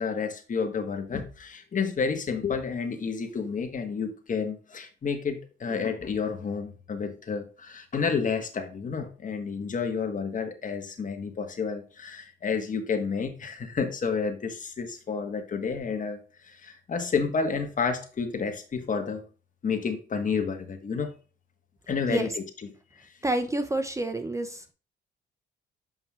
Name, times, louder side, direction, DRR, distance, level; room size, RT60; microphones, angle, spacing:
voice 1, 0.0-19.2 19.6-21.1 21.9-22.7 23.0-23.1, left 5 dB, 40° left, 6 dB, 1.4 m, -30 dB
voice 2, 23.2-24.6, right 1 dB, 15° right, 9 dB, 0.7 m, -28 dB
7.1 x 5.5 x 2.4 m, 0.35 s
cardioid pair, 90°, 20 cm